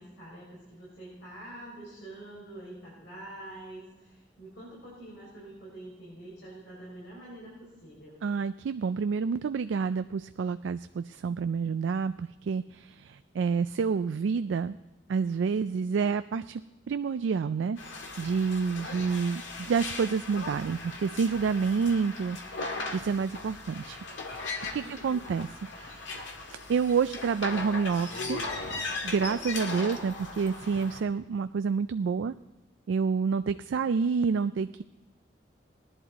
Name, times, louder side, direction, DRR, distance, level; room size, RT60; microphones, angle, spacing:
voice 1, 0.0-8.2 18.8-19.2 24.7-25.3, right 1 dB, 65° left, -8 dB, 5.8 m, -46 dB
voice 2, 8.2-14.8 15.1-16.6 16.9-17.8 18.2-24.0 24.7-25.5 25.8-26.1 26.7-28.4 29.0-32.3 32.9-34.8, right 5 dB, 85° right, 11 dB, 0.3 m, -28 dB
sound 1, 17.8-31.0, left 3 dB, 85° left, 1.8 m, -38 dB
19.5 x 11.0 x 4.0 m, 1.1 s
head